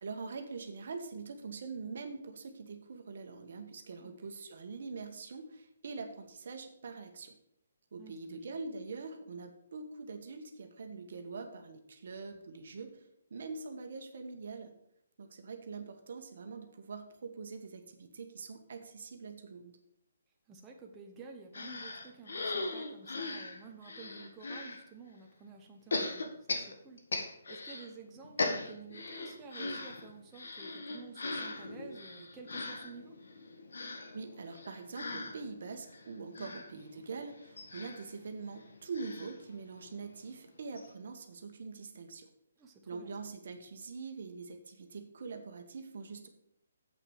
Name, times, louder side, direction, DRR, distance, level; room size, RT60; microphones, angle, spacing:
voice 1, 0.0-7.3 7.9-14.7 15.2-19.8 34.1-42.3 42.9-46.3, right 4 dB, 60° right, 6 dB, 1.4 m, -44 dB
voice 2, 8.0-8.5 20.5-33.2 36.5-36.6 42.6-43.2, right 5 dB, 15° right, 1 dB, 1.1 m, -52 dB
sound 1, 21.5-24.8 25.9-27.9 28.2-40.1 40.5-40.6 40.8-40.9, left 3 dB, 75° left, 1.7 m, -39 dB
7.9 x 6.1 x 6.6 m, 0.75 s
hypercardioid pair, 145°, 0 cm